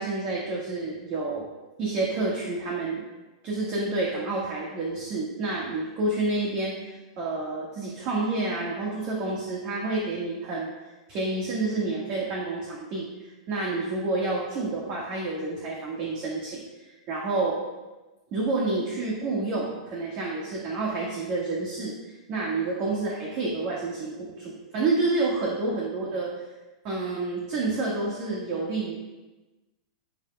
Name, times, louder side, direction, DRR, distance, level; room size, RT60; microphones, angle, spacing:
voice 1, 0.0-1.5 1.8-3.0 3.4-6.9 7.2-10.7 11.1-13.1 13.5-17.6 18.3-21.9 22.3-26.3 26.8-29.0, right 3 dB, 35° right, -4 dB, 1.7 m, -29 dB
15.5 x 5.4 x 2.3 m, 1.1 s
supercardioid pair, 155°, 3 cm